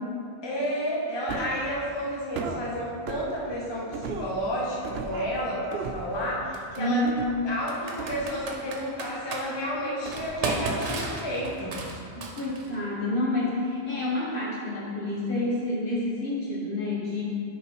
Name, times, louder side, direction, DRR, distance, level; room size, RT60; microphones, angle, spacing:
voice 1, 0.4-7.0 7.4-11.8, equal, 25° left, -5 dB, 0.8 m, -31 dB
sound 1, 1.3-1.6 2.4-2.6 3.1-3.3 3.9-4.4 4.8-5.4 5.7-6.1 7.1-7.4 8.0-8.8 10.1-10.5 10.9-11.0, right 5 dB, 65° right, 0.8 m, -36 dB
Computer keyboard, 4.9-5.0 6.5-6.8 7.7-9.4 10.1-12.7, right 3 dB, 90° right, 1.1 m, -33 dB
voice 2, 6.8-7.2 12.3-17.2, left 2 dB, 50° left, -5 dB, 1.6 m, -28 dB
6.8 x 4.9 x 4.6 m, 2.5 s
omnidirectional pair, 1.2 m